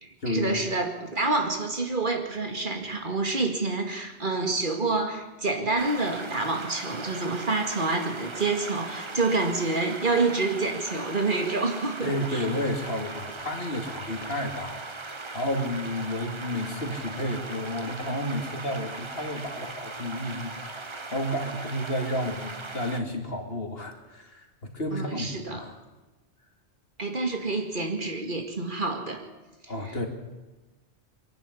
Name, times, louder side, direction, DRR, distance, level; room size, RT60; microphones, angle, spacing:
voice 1, 0.0-12.5 24.9-25.6 27.0-29.2 29.6-30.1, right 3 dB, 45° right, 4 dB, 2.3 m, -28 dB
sound 1, 5.8-23.0, right 3 dB, 25° right, 1.1 m, -39 dB
voice 2, 12.0-25.8 29.7-30.1, left 1 dB, 60° left, 5 dB, 2.6 m, -31 dB
23.5 x 11.5 x 9.8 m, 1.1 s
omnidirectional pair, 1.2 m